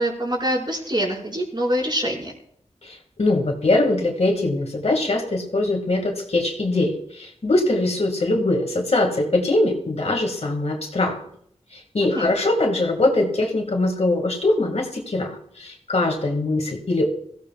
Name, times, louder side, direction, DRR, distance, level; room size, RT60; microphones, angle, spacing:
voice 1, 0.0-2.3 12.0-12.3, equal, 40° right, -3 dB, 5.5 m, -25 dB
voice 2, 2.8-11.2 11.9-17.1, left 2 dB, 65° left, 2 dB, 2.2 m, -22 dB
22.5 x 15.5 x 2.4 m, 0.67 s
wide cardioid pair, 50°, 12 cm